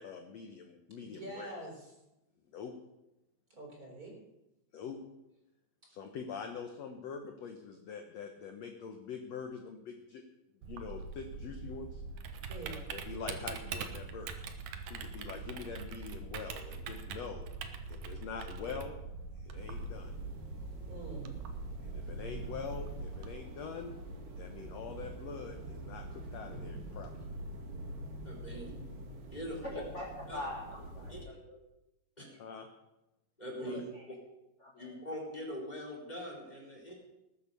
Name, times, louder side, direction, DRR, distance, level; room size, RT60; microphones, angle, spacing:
voice 1, 0.0-1.5 2.5-2.7 4.7-5.0 5.9-10.2 10.7-12.0 12.9-14.3 14.9-17.5 17.9-18.9 19.4-20.1 21.8-23.9 24.4-27.1 32.4-32.7, left 6 dB, 70° left, 5 dB, 1.6 m, -44 dB
voice 2, 1.0-1.9 3.6-4.1 12.5-12.9 20.9-21.4 28.5-29.1, right 1 dB, 25° right, 0 dB, 3.9 m, -46 dB
Typing, 10.6-23.3, right 4 dB, 65° right, 2.1 m, -43 dB
sound 1, 19.5-31.2, right 1 dB, 85° right, 4.2 m, -45 dB
voice 3, 28.2-28.7 29.3-29.6 30.3-30.4 31.1-31.2 32.2-32.4 33.4-33.8 34.8-36.9, equal, 10° left, -2 dB, 3.4 m, -42 dB
voice 4, 29.6-30.1 30.3-31.6 33.6-34.0 34.6-35.0, left 1 dB, 30° left, -3 dB, 1.4 m, -43 dB
19.5 x 8.1 x 6.8 m, 0.94 s
omnidirectional pair, 4.5 m